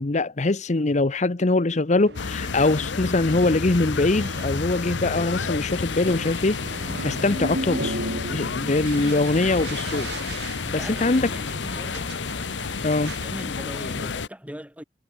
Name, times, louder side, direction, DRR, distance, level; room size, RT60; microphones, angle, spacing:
voice 1, 0.0-8.0 8.3-10.1 10.7-11.3 12.8-13.1, left 2 dB, 40° left, 0.8 m, -23 dB
sound 1, 2.0-13.2, right 1 dB, 65° right, 7.1 m, -36 dB
sound 2, 2.1-14.3, left 5 dB, 75° left, 0.8 m, -30 dB
voice 2, 10.6-12.2 13.1-14.8, equal, 10° right, 6.1 m, -40 dB
head